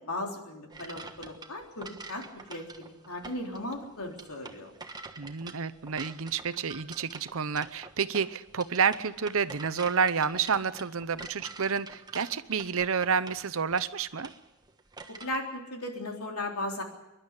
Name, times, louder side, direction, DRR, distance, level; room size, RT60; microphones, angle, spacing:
voice 1, 0.0-4.7 15.1-16.8, left 1 dB, 75° left, 1 dB, 3.8 m, -37 dB
sound 1, 0.7-15.4, right 3 dB, 20° right, 1.3 m, -46 dB
voice 2, 5.2-14.3, right 6 dB, 65° right, 14 dB, 0.8 m, -29 dB
27.0 x 11.5 x 9.8 m, 0.97 s
head